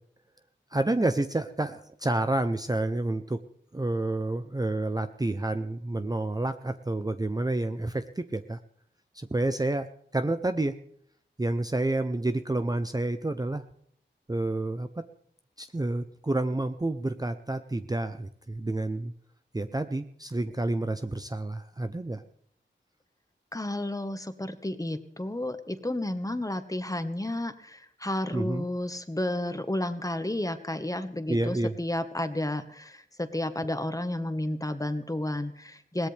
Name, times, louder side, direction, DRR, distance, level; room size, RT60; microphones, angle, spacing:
voice 1, 0.7-3.4 3.7-8.6 9.1-10.8 11.4-13.7 14.3-15.1 15.6-19.1 19.5-22.2 28.3-28.7 31.3-31.7, right 2 dB, 20° right, 9 dB, 0.7 m, -29 dB
voice 2, 23.5-36.1, left 1 dB, 15° left, 9 dB, 1.4 m, -32 dB
21.5 x 17.5 x 3.4 m, 0.65 s
wide cardioid pair, 55°, 20 cm